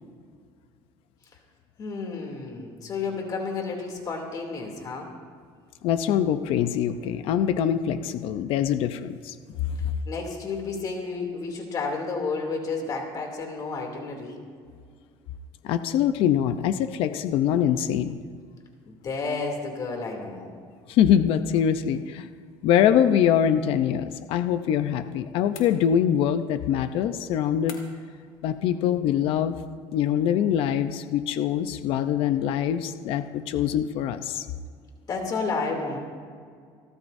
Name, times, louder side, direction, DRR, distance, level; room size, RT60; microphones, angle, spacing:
voice 1, 1.8-5.1 10.1-14.4 18.9-20.5 35.1-36.0, left 4 dB, 40° left, 1 dB, 2.8 m, -31 dB
voice 2, 5.8-9.3 15.6-18.2 20.9-22.3 22.6-27.8 28.4-29.6 29.9-34.5, left 9 dB, 65° left, 10 dB, 0.7 m, -24 dB
sound 1, 25.5-26.3 27.7-28.2, left 8 dB, 90° left, 2.1 m, -45 dB
28.0 x 13.0 x 2.7 m, 2.1 s
cardioid pair, 140°, 10 cm